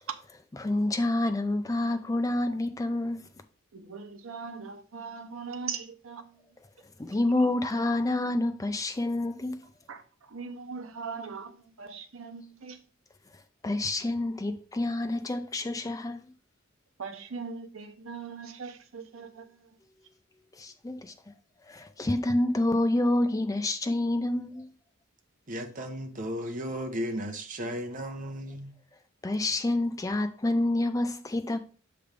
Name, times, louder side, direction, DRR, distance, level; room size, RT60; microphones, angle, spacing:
voice 1, 0.6-3.2 7.0-9.7 13.6-16.3 20.5-21.1 21.7-24.7 29.2-31.6, left 1 dB, 15° left, 0.4 m, -28 dB
voice 2, 3.7-6.5 9.9-12.8 17.0-19.8, right 5 dB, 85° right, 0.8 m, -40 dB
voice 3, 25.5-28.7, equal, 40° right, 0.9 m, -35 dB
6.9 x 3.4 x 5.0 m
head